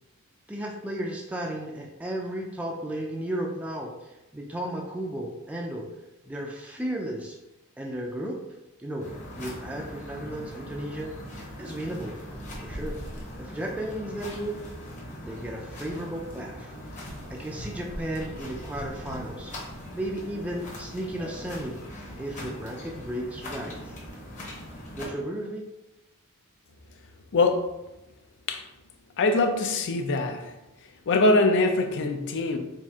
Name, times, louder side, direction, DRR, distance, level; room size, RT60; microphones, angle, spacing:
voice 1, 0.5-5.9 6.3-7.4 7.8-8.4 8.8-9.1 9.3-11.1 11.6-12.2 12.6-13.0 13.4-14.6 15.2-16.7 17.3-19.5 19.9-21.8 22.2-23.9 24.9-25.7, right 1 dB, 5° right, -1 dB, 0.4 m, -34 dB
sound 1, 9.0-25.0, equal, 35° left, 1.0 m, -40 dB
voice 2, 27.3-27.7 28.5-28.7 29.2-30.6 31.1-32.6, left 2 dB, 55° left, 6 dB, 0.5 m, -23 dB
4.3 x 2.5 x 3.5 m, 0.97 s
head